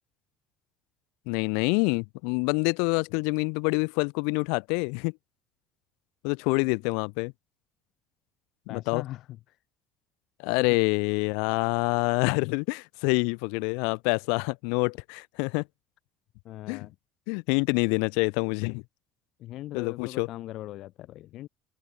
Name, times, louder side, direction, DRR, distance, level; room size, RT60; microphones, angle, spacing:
voice 1, 1.3-5.1 6.2-7.3 8.7-9.0 10.4-15.6 16.7-16.9 17.3-18.8 19.7-20.3, left 38 dB, 90° left, 0.4 m, -26 dB
voice 2, 8.7-9.6 10.7-10.8 16.4-16.9 19.4-21.5, left 15 dB, 60° left, 4.6 m, -40 dB
open air
cardioid pair, 135°, 0 cm